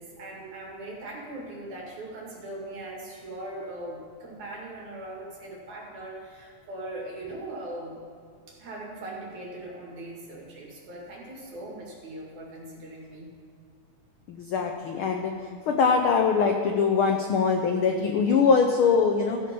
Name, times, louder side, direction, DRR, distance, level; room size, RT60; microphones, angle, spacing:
voice 1, 0.0-8.0 8.5-13.3, right 1 dB, 80° right, -3 dB, 3.6 m, -40 dB
voice 2, 14.3-15.3 15.7-19.4, left 5 dB, 85° left, 3 dB, 1.1 m, -22 dB
15.0 x 6.9 x 5.4 m, 2.3 s
omnidirectional pair, 3.3 m